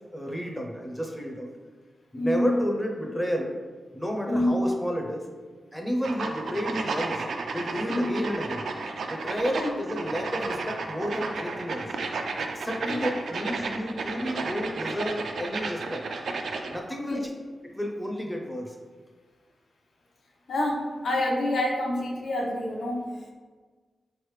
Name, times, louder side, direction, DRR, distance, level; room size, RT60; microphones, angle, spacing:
voice 1, 0.1-1.5 2.1-3.6 3.9-5.3 5.7-7.2 7.5-8.7 9.1-11.9 12.4-16.0 16.7-17.3 17.7-18.8, equal, 5° left, 1 dB, 0.5 m, -31 dB
voice 2, 2.1-2.5 4.3-4.6 7.9-8.1 9.5-9.7 12.8-13.0 17.0-17.3 20.5-23.2, left 1 dB, 80° left, -1 dB, 0.7 m, -27 dB
sound 1, 6.0-16.8, right 3 dB, 85° right, 0.3 m, -33 dB
4.0 x 3.2 x 3.1 m, 1.5 s
wide cardioid pair, 125°, 0 cm